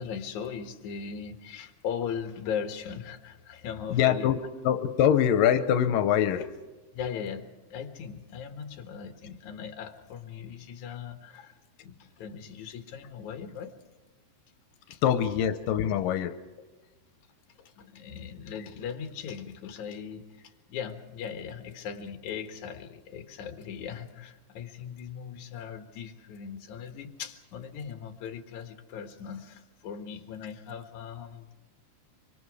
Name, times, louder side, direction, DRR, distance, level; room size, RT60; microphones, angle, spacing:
voice 1, 0.0-4.3 6.9-11.6 11.8-13.7 14.9-15.0 17.6-31.5, left 7 dB, 65° left, 6 dB, 2.8 m, -39 dB
voice 2, 3.9-4.4 4.6-6.6 15.0-16.7, left 9 dB, 90° left, 9 dB, 2.5 m, -24 dB
25.5 x 25.0 x 4.9 m, 1.2 s
omnidirectional pair, 3.9 m